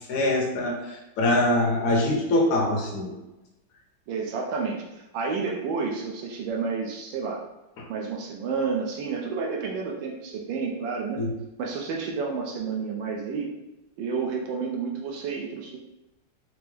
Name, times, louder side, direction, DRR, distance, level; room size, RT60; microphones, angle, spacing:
voice 1, 0.1-3.1 7.8-7.9 11.2-11.3, left 1 dB, 65° left, 0 dB, 0.9 m, -24 dB
voice 2, 4.1-7.4 7.9-11.2 11.6-13.5 14.0-15.8, right 5 dB, 75° right, -1 dB, 1.2 m, -30 dB
4.6 x 2.0 x 3.1 m, 1.0 s
omnidirectional pair, 2.3 m